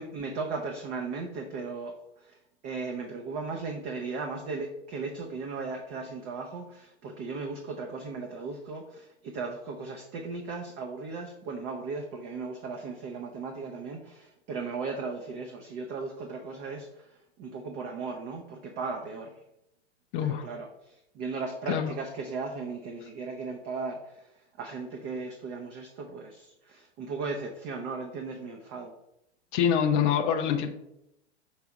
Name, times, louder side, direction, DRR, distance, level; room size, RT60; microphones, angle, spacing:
voice 1, 0.0-2.4 2.6-19.3 20.2-28.9, right 4 dB, 30° right, 3 dB, 0.7 m, -37 dB
voice 2, 20.1-20.5 21.7-21.9 29.5-30.7, left 8 dB, 25° left, 4 dB, 0.4 m, -25 dB
5.7 x 3.4 x 4.8 m, 0.85 s
hypercardioid pair, 115°, 35 cm